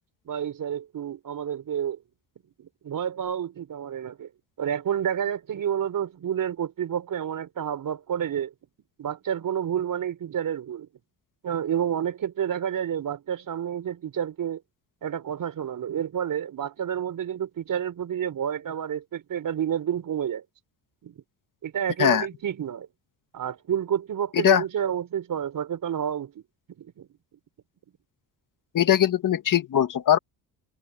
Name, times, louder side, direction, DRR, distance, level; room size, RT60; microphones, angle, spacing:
voice 1, 0.2-2.0 2.6-4.3 4.6-8.5 9.0-10.9 11.4-14.6 15.0-20.4 21.0-21.2 21.6-22.9 23.3-26.4 26.8-27.1, right 9 dB, 50° right, 4.7 m, -29 dB
voice 2, 24.3-24.6 28.7-30.2, left 10 dB, 50° left, 2.3 m, -21 dB
cardioid pair, 100°, 41 cm